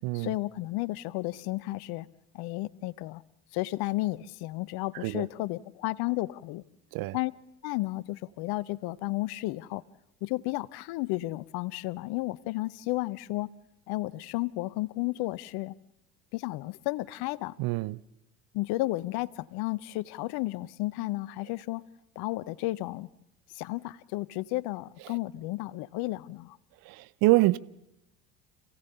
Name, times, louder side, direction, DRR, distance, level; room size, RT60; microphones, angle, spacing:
voice 1, 0.1-2.1 2.3-3.2 3.5-6.6 7.1-7.3 7.6-9.8 10.2-13.5 13.9-15.8 16.3-17.6 18.5-21.9 22.2-23.1 23.5-26.6, left 19 dB, 50° left, 0.8 m, -33 dB
voice 2, 17.6-18.0 26.9-27.6, right 20 dB, 45° right, 0.7 m, -25 dB
27.0 x 17.0 x 6.9 m
figure-of-eight pair, 65°, 49 cm